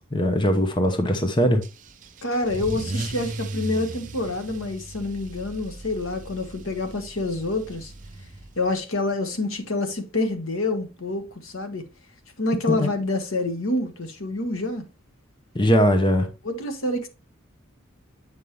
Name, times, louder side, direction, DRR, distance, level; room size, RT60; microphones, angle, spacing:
voice 1, 0.1-1.6 12.7-12.9 15.5-16.3, equal, 20° left, 0.9 m, -20 dB
Car / Engine starting / Accelerating revving vroom, 1.6-8.8, right 2 dB, 35° right, 0.6 m, -36 dB
voice 2, 2.2-7.9 8.5-11.9 12.4-14.8 16.4-17.1, left 2 dB, 75° left, 1.4 m, -27 dB
8.2 x 5.5 x 3.2 m
head